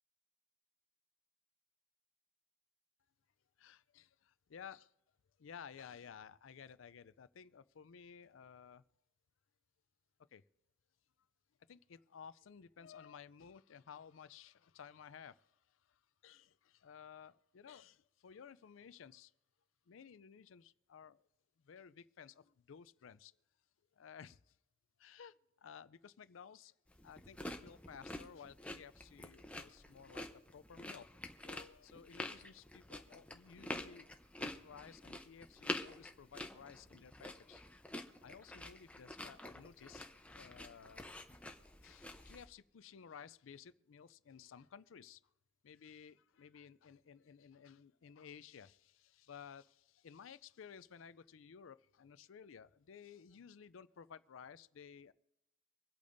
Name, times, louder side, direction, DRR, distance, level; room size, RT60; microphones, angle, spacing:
voice 1, 3.6-4.9 5.4-8.8 10.3-10.4 11.7-19.3 19.9-21.3 21.6-23.4 23.9-24.6 25.0-26.7 27.0-31.1 31.4-34.1 34.4-37.6 38.2-40.1 40.3-41.1 41.8-45.2 45.6-55.1, left 7 dB, 85° left, 0.4 m, -56 dB
sound 1, 26.9-42.5, left 1 dB, 5° left, 0.7 m, -48 dB
25.5 x 8.5 x 2.6 m
head